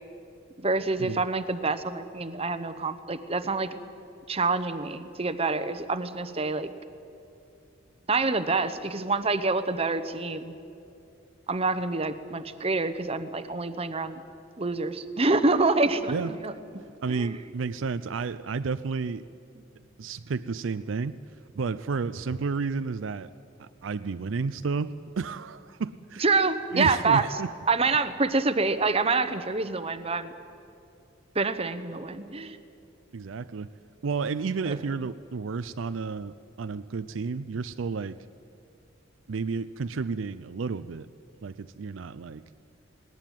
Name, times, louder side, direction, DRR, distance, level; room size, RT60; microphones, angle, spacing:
voice 1, 0.6-3.7 4.3-6.7 8.1-10.5 11.5-14.2 14.6-16.5 17.1-17.3 26.2-27.2 27.7-30.3 31.3-32.6 34.7-34.8, right 3 dB, 30° right, 11 dB, 1.0 m, -26 dB
voice 2, 17.0-19.3 20.0-21.2 21.6-23.3 23.6-26.2 26.7-27.5 33.1-33.7 34.0-38.2 39.3-41.1 41.4-42.4, right 4 dB, 70° right, 12 dB, 0.5 m, -31 dB
19.0 x 19.0 x 9.2 m, 2.6 s
head